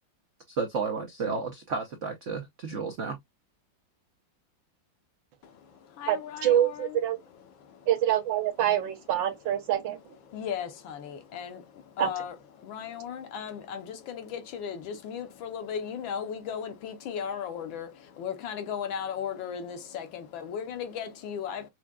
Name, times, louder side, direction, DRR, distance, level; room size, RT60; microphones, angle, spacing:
voice 1, 0.5-3.2, right 4 dB, 85° right, 0.6 m, -32 dB
voice 2, 5.4-8.0 8.6-8.7 9.2-21.7, left 7 dB, 75° left, 1.5 m, -37 dB
voice 3, 6.4-7.2 7.9-10.0 12.0-12.1, right 11 dB, 70° right, 1.6 m, -25 dB
6.1 x 2.2 x 2.2 m
omnidirectional pair, 2.2 m